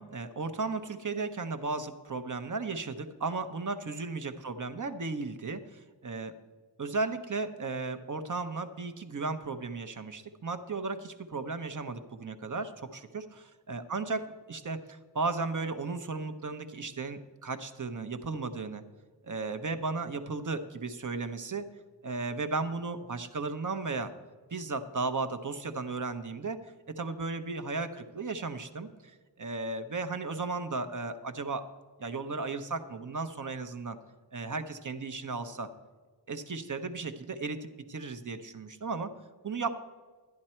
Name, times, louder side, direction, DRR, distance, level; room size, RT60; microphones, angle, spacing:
voice 1, 0.0-6.3 6.8-18.8 19.2-21.7 22.0-24.1 24.5-26.6 26.9-31.7 32.0-34.0 34.3-35.7 36.3-39.1 39.4-39.7, right 3 dB, 45° right, 9 dB, 0.9 m, -35 dB
11.0 x 11.0 x 4.4 m, 1.4 s
wide cardioid pair, 65°, 45 cm